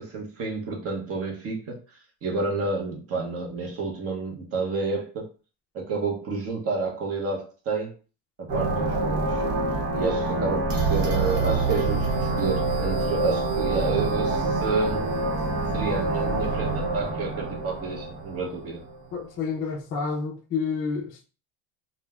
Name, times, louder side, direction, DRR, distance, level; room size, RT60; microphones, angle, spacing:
voice 1, 0.0-1.8 2.2-5.3 5.7-7.9 8.4-9.4 10.0-15.1 15.7-18.9, right 4 dB, 35° right, 0.7 m, -30 dB
sound 1, 8.5-19.1, right 3 dB, 75° right, 0.9 m, -26 dB
voice 2, 19.1-21.2, left 5 dB, 30° left, 0.4 m, -29 dB
3.1 x 2.1 x 2.2 m
cardioid pair, 150°, 44 cm